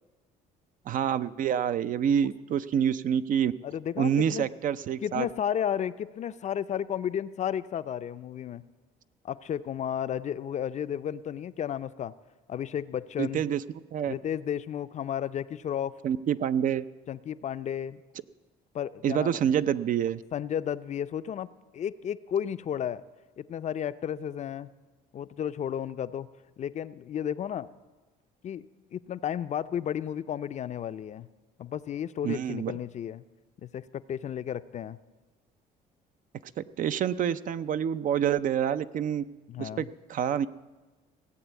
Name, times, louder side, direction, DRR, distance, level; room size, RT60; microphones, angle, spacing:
voice 1, 0.9-3.5 4.0-5.3 13.2-13.6 13.9-14.1 16.0-16.8 19.0-20.2 32.2-32.7 36.6-39.2 39.6-40.5, right 9 dB, 50° right, 13 dB, 0.5 m, -27 dB
voice 2, 3.6-4.5 5.0-8.6 9.2-12.1 12.5-13.4 14.1-15.9 17.1-18.0 18.7-19.4 20.3-23.0 23.4-24.7 25.1-26.3 26.6-27.7 28.4-31.3 31.6-33.2 33.6-35.0 39.5-39.9, left 9 dB, 45° left, 13 dB, 0.5 m, -33 dB
17.0 x 8.2 x 8.2 m, 1.2 s
cardioid pair, 110°, 17 cm